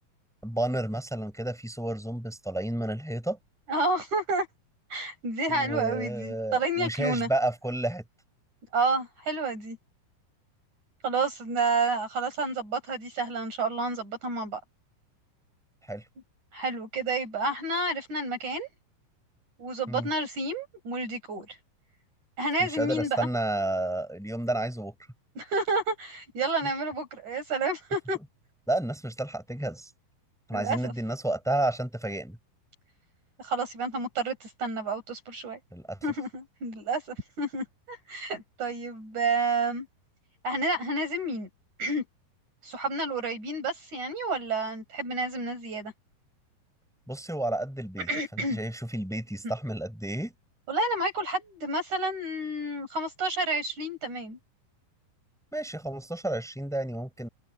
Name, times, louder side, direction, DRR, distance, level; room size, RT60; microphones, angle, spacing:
voice 1, 0.4-3.4 5.5-8.0 15.9-16.1 19.9-20.1 22.6-24.9 28.7-29.9 30.5-32.4 35.7-36.0 47.1-50.3 55.5-57.3, right 1 dB, ahead, 7.4 m, -31 dB
voice 2, 3.7-4.5 4.9-7.3 8.7-9.8 11.0-14.6 16.5-18.7 19.6-21.6 22.4-23.3 25.4-28.2 30.5-30.9 33.4-35.6 36.0-39.9 40.4-41.5 41.8-42.0 42.6-45.9 48.1-48.6 50.7-54.4, right 2 dB, 55° right, 8.2 m, -30 dB
omnidirectional pair, 4.2 m